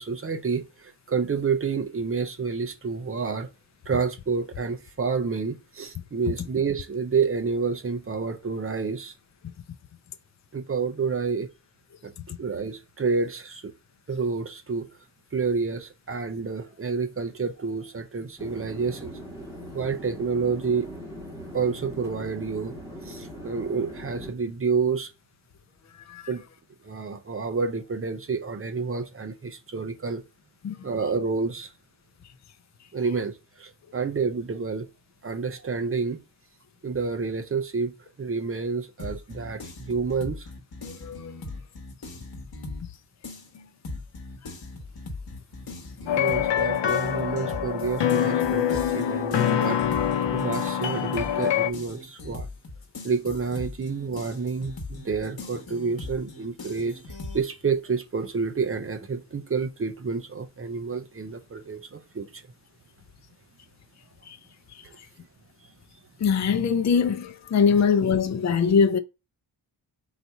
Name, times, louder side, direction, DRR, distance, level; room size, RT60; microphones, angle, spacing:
voice 1, 0.0-3.5 3.9-9.1 10.5-11.5 12.0-12.1 12.4-13.7 14.1-14.9 15.3-19.2 19.7-20.9 21.5-22.7 23.0-25.1 26.3-26.4 26.8-30.2 30.8-31.7 32.9-34.9 35.2-36.2 36.8-37.9 38.2-40.5 46.0-49.8 50.3-52.5 53.0-62.4 64.8-65.0, right 5 dB, 30° right, 0.6 m, -29 dB
sound 1, 18.4-24.3, equal, 5° right, 1.4 m, -40 dB
sound 2, 39.0-42.9 43.2-57.4, left 2 dB, 60° left, 1.2 m, -40 dB
voice 2, 40.8-41.3 64.3-64.4 66.2-69.0, left 6 dB, 40° left, 0.5 m, -22 dB
sound 3, 46.1-51.7, left 9 dB, 90° left, 0.6 m, -25 dB
4.1 x 2.8 x 4.5 m
wide cardioid pair, 145°, 42 cm